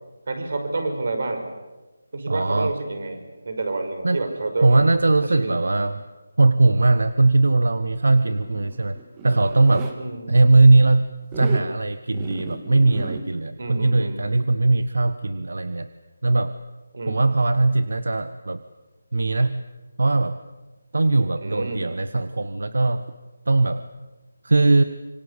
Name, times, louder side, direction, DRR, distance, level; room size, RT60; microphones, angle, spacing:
voice 1, 0.3-1.5 2.1-3.2 3.5-4.8 5.2-5.6 10.0-10.4 13.6-14.2 16.9-17.2 21.4-21.8, right 3 dB, 55° right, 6 dB, 5.6 m, -29 dB
voice 2, 2.3-2.7 4.0-4.2 4.6-6.0 6.4-9.9 10.3-15.9 16.2-16.5 17.1-18.6 19.1-19.6 20.0-20.4 20.9-23.0 23.5-23.9 24.4-24.8, right 2 dB, 80° right, 12 dB, 1.2 m, -19 dB
Zipper (clothing), 8.3-10.0 11.2-11.7 12.1-13.2, right 5 dB, 15° right, 2.0 m, -35 dB
26.0 x 25.5 x 8.5 m, 1.1 s
figure-of-eight pair, 170°, 0 cm